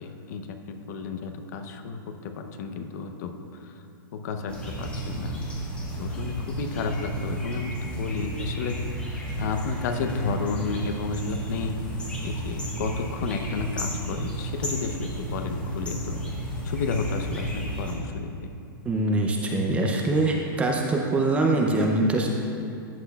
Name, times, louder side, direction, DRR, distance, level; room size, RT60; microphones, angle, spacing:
voice 1, 0.0-3.3 3.6-3.8 4.1-5.4 6.0-8.8 9.1-11.8 12.2-16.2 16.6-18.3, left 4 dB, 50° left, 6 dB, 0.7 m, -32 dB
sound 1, 4.5-17.9, right 1 dB, 10° left, 1.2 m, -33 dB
voice 2, 18.9-22.3, right 2 dB, 10° right, 0 dB, 0.5 m, -23 dB
13.5 x 8.2 x 2.3 m, 2.5 s
hypercardioid pair, 160°, 12 cm